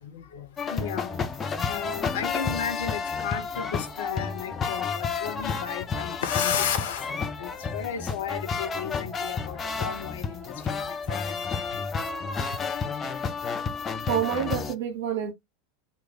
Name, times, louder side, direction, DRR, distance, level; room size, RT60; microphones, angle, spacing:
voice 1, 0.0-11.4, left 8 dB, 60° left, 0.7 m, -34 dB
sound 1, 0.6-14.7, left 5 dB, 25° left, 0.5 m, -31 dB
sound 2, 0.7-14.1, right 1 dB, 5° left, 1.8 m, -50 dB
voice 2, 14.1-15.3, right 8 dB, 55° right, 1.3 m, -27 dB
3.1 x 2.4 x 3.5 m
figure-of-eight pair, 85°, 0 cm